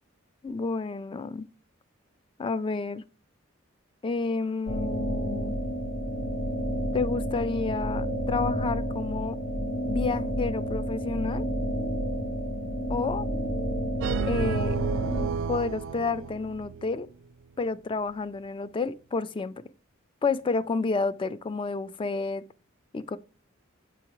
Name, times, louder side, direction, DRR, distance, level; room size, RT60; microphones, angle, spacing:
voice 1, 0.4-1.5 2.4-3.0 4.0-5.5 6.9-9.4 9.9-11.5 12.9-13.3 14.3-14.8 15.5-17.1 17.6-19.6 20.2-22.4 22.9-23.2, left 4 dB, 25° left, 0.3 m, -30 dB
sound 1, 4.7-15.3, equal, 80° left, 1.3 m, -30 dB
sound 2, 14.0-17.0, right 6 dB, 65° right, 0.4 m, -31 dB
7.8 x 4.7 x 3.0 m
head